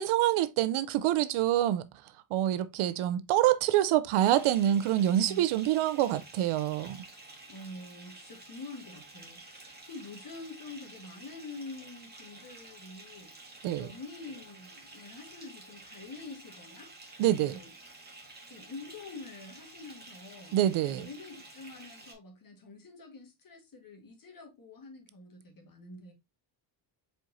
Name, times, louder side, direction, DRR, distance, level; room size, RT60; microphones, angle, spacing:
voice 1, 0.0-1.9 2.3-7.0 13.6-13.9 17.2-17.5 20.5-21.1, right 12 dB, 90° right, 0.6 m, -26 dB
Bathtub (filling or washing) / Fill (with liquid), 4.2-22.1, right 2 dB, 20° right, 1.6 m, -51 dB
voice 2, 4.9-5.4 7.5-16.9 17.3-17.7 18.5-26.1, left 3 dB, 45° left, 1.5 m, -46 dB
4.5 x 4.5 x 2.6 m
cardioid pair, 95°, 48 cm